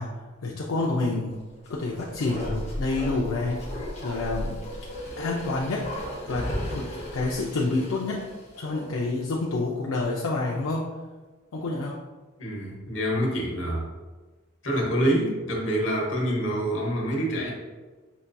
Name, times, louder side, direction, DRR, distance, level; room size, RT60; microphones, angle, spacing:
voice 1, 0.0-1.4 1.7-4.6 5.2-5.9 6.3-8.3 8.6-10.9 11.5-12.0, left 2 dB, 80° left, -3 dB, 0.4 m, -28 dB
Bark, 1.6-9.2 9.5-9.6, equal, 30° left, 0.7 m, -35 dB
voice 2, 12.4-13.9 14.6-17.5, right 1 dB, 65° left, -2 dB, 0.9 m, -26 dB
5.6 x 2.6 x 2.2 m, 1.3 s
head